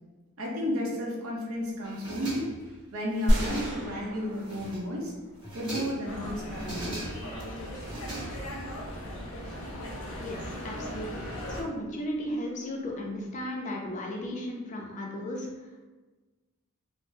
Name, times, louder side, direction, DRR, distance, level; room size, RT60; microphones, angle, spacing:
voice 1, 0.4-2.5 2.9-5.1 5.5-7.0, equal, 70° right, -2 dB, 0.7 m, -32 dB
sound 1, 1.8-2.7 3.1-4.0 4.4-5.0 5.3-6.1 6.5-7.4 7.7-8.7, right 1 dB, 25° right, 1.3 m, -40 dB
sound 2, 3.3-5.6, equal, 50° right, 1.0 m, -29 dB
sound 3, 6.0-11.6, equal, 80° left, 0.6 m, -38 dB
voice 2, 10.2-15.8, left 1 dB, 35° left, 0 dB, 0.4 m, -35 dB
3.4 x 2.0 x 2.6 m, 1.2 s
head